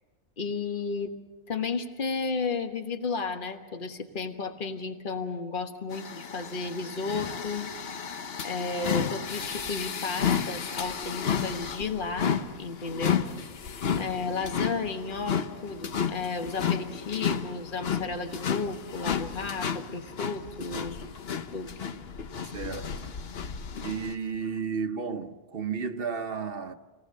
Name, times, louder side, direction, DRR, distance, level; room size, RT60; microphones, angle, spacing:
voice 1, 0.4-1.1 1.5-8.0 8.4-13.2 13.9-21.0 21.5-21.8, left 4 dB, 50° left, 1.5 m, -33 dB
sound 1, 5.9-24.1, left 7 dB, 70° left, 1.1 m, -32 dB
voice 2, 22.4-22.9 23.8-26.7, right 5 dB, 60° right, 1.1 m, -33 dB
26.5 x 18.0 x 6.7 m
omnidirectional pair, 1.1 m